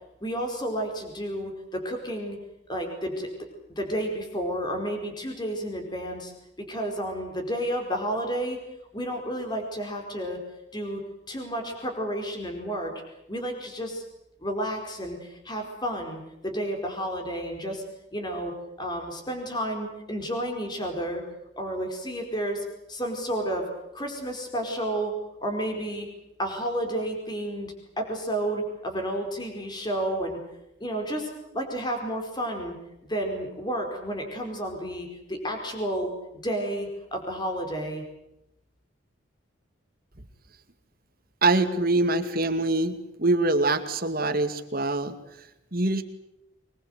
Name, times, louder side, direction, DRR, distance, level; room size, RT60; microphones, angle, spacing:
voice 1, 0.2-2.4 2.7-3.3 3.7-6.3 6.7-8.6 8.9-10.4 10.7-11.0 11.3-12.9 13.3-14.0 14.4-17.8 18.1-21.2 21.6-23.7 23.9-25.1 25.4-26.1 26.4-30.4 30.8-32.7 33.1-36.1 36.4-38.0, right 1 dB, 20° left, 3 dB, 4.7 m, -31 dB
voice 2, 41.4-45.2 45.7-46.0, right 2 dB, 45° right, 7 dB, 2.3 m, -24 dB
25.0 x 22.0 x 8.1 m, 0.86 s
head